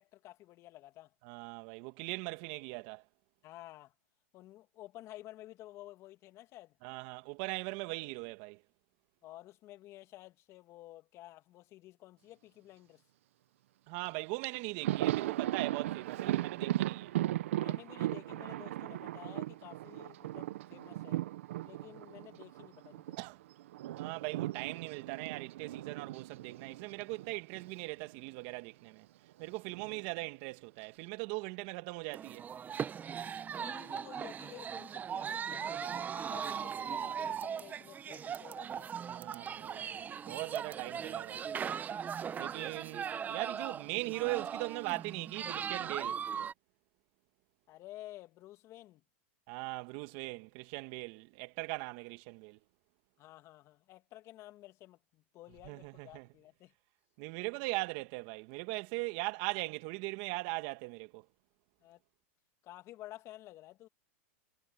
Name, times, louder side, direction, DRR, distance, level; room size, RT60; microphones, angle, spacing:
voice 1, 0.0-1.1 3.4-3.9 4.3-6.8 9.2-13.0 17.6-21.2 21.6-23.2 33.5-38.9 47.7-49.0 53.2-56.7 61.8-62.0 62.6-63.9, left 15 dB, 40° left, 2.5 m, -52 dB
voice 2, 1.2-3.0 6.8-8.6 13.9-17.1 23.2-23.4 24.0-29.1 29.4-32.5 39.1-41.6 42.4-46.2 49.5-52.6 55.7-56.3 57.2-61.2, right 26 dB, 55° right, 2.3 m, -40 dB
Thunder, 14.0-14.1 14.4-23.2 23.5-27.8 28.1-28.2 29.4-30.1, right 14 dB, 70° right, 1.2 m, -37 dB
sound 1, 32.1-46.5, right 8 dB, 25° right, 1.1 m, -39 dB
hypercardioid pair, 110°, 7 cm